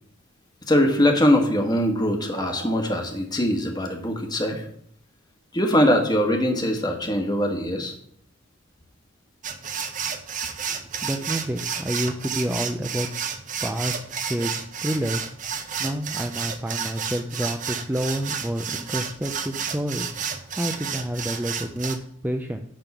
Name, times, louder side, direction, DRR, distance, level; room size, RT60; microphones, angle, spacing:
voice 1, 0.7-4.7 5.5-7.9, equal, 20° left, 3 dB, 1.2 m, -22 dB
sound 1, 2.3-2.9, right 4 dB, 60° right, 1.0 m, -39 dB
sound 2, 9.4-22.0, right 7 dB, 40° right, 0.7 m, -31 dB
voice 2, 11.0-13.1 13.6-14.0 14.3-14.5 14.8-15.2 15.8-22.6, right 1 dB, 10° right, 4 dB, 0.4 m, -29 dB
10.5 x 3.6 x 6.9 m, 0.68 s
head